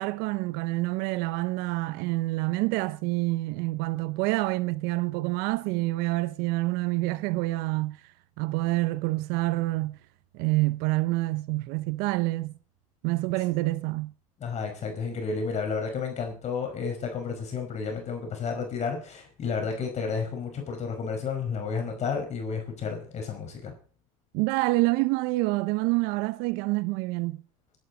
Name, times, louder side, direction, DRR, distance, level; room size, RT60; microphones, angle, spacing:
voice 1, 0.0-8.0 8.4-10.0 10.3-12.5 13.0-14.1 24.3-27.4, right 20 dB, 60° right, 0.7 m, -27 dB
voice 2, 14.4-23.7, left 5 dB, 40° left, 5.1 m, -31 dB
22.5 x 11.5 x 4.0 m
hypercardioid pair, 85°, 18 cm